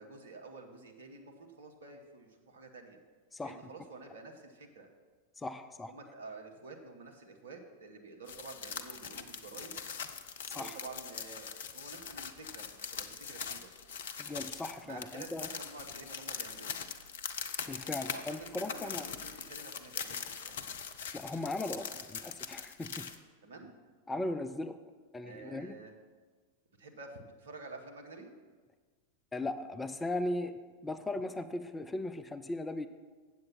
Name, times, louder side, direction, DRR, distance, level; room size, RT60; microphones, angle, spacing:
voice 1, 0.0-3.0 3.4-4.9 5.9-9.8 10.5-13.7 14.8-16.8 18.1-20.6 23.4-23.8 25.2-25.9 26.8-28.4, right 3 dB, 65° right, 3 dB, 1.2 m, -49 dB
voice 2, 5.4-5.9 10.5-10.8 14.2-15.5 17.7-19.1 21.1-23.1 24.1-24.8 25.1-25.7 29.3-32.9, left 2 dB, 10° left, 11 dB, 0.4 m, -38 dB
sound 1, 8.3-23.2, left 6 dB, 60° left, 0.6 m, -42 dB
7.9 x 7.8 x 5.6 m, 1.5 s
figure-of-eight pair, 90°, 0 cm